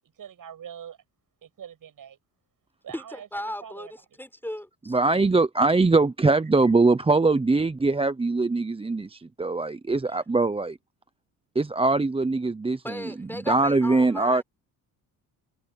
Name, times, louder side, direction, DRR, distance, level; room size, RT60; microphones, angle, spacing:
voice 1, 0.2-1.0 1.4-2.2 2.8-3.9, right 8 dB, 60° right, 6.9 m, -43 dB
voice 2, 2.9-5.0 12.8-14.4, left 1 dB, 5° left, 5.2 m, -36 dB
voice 3, 4.9-10.8 11.5-13.0 13.5-14.4, right 3 dB, 15° right, 0.8 m, -22 dB
cardioid pair, 75°, 38 cm